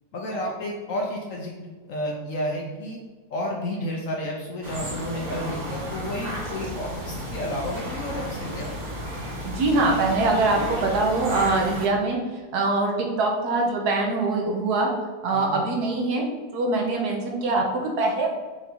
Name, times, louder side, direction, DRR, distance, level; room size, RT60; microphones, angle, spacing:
voice 1, 0.1-1.5 1.8-3.0 3.3-8.7 15.3-15.6, left 1 dB, 65° left, -1 dB, 0.8 m, -31 dB
sound 1, 4.6-11.9, equal, 40° right, 0.6 m, -33 dB
voice 2, 9.4-12.2 12.5-14.9 15.2-18.3, right 3 dB, 70° right, 0 dB, 1.2 m, -23 dB
4.6 x 2.6 x 4.2 m, 1.3 s
omnidirectional pair, 1.8 m